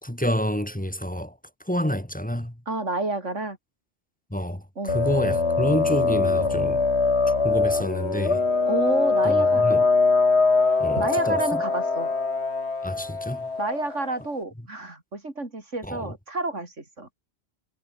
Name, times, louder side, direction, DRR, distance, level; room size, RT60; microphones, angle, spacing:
voice 1, 0.0-1.4 1.6-2.6 4.3-6.9 7.4-8.5 9.2-9.9 10.8-11.6 12.8-13.5 15.8-16.1, equal, 5° left, 1.8 m, -28 dB
voice 2, 2.7-3.6 4.8-5.0 8.7-9.7 10.6-12.1 13.6-17.1, right 2 dB, 80° right, 4.8 m, -30 dB
sound 1, 4.9-14.1, left 4 dB, 60° left, 2.7 m, -22 dB
omnidirectional pair, 1.2 m